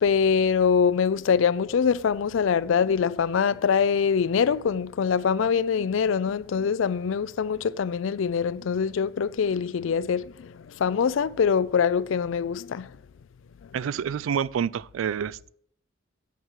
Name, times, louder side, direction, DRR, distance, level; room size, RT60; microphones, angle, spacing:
voice 1, 0.0-10.5 10.8-12.9, left 6 dB, 70° left, 0.4 m, -24 dB
voice 2, 13.7-15.5, right 8 dB, 75° right, 0.3 m, -28 dB
9.4 x 6.0 x 6.4 m
head